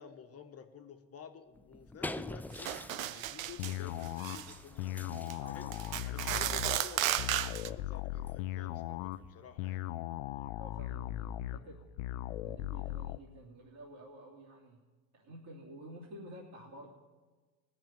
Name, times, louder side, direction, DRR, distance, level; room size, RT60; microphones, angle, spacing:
voice 1, 0.0-4.9 5.4-5.7 6.0-9.8, left 7 dB, 35° left, 5 dB, 1.4 m, -51 dB
sound 1, 1.6-9.6, left 1 dB, 5° left, 0.5 m, -48 dB
sound 2, 2.6-3.8 4.0-4.5 5.1-5.3 5.7-7.7, right 12 dB, 90° right, 0.7 m, -34 dB
sound 3, 3.6-13.2, left 14 dB, 75° left, 0.6 m, -38 dB
voice 2, 5.3-6.0 10.3-11.9 12.4-14.8 15.1-16.9, right 1 dB, 45° right, -4 dB, 3.1 m, -51 dB
19.0 x 6.8 x 9.0 m, 1.3 s
hypercardioid pair, 75°, 39 cm